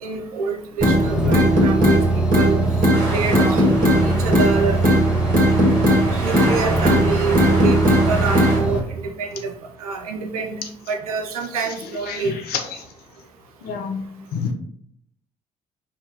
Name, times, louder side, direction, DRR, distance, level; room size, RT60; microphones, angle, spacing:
voice 1, 0.0-2.0 2.4-2.6 3.1-3.6 4.0-5.1 6.2-7.8 8.1-9.5 9.8-12.3, right 5 dB, 85° right, 4 dB, 0.5 m, -26 dB
sound 1, 0.8-8.8, right 2 dB, 5° right, 1.0 m, -22 dB
sound 2, 0.8-1.0 1.3-2.0 2.3-2.5 2.8-3.0 3.3-4.0 4.3-4.5 4.8-5.0 5.3-6.0 6.3-6.5 6.8-7.0 7.3-8.0 8.3-8.5, left 1 dB, 50° right, 1.5 m, -16 dB
sound 3, 2.9-8.6, right 1 dB, 65° right, 1.4 m, -31 dB
voice 2, 12.1-12.9 13.6-14.0 14.3-14.5, left 6 dB, 60° left, 4 dB, 0.7 m, -27 dB
4.8 x 2.5 x 2.9 m, 0.68 s
hypercardioid pair, 45°, 18 cm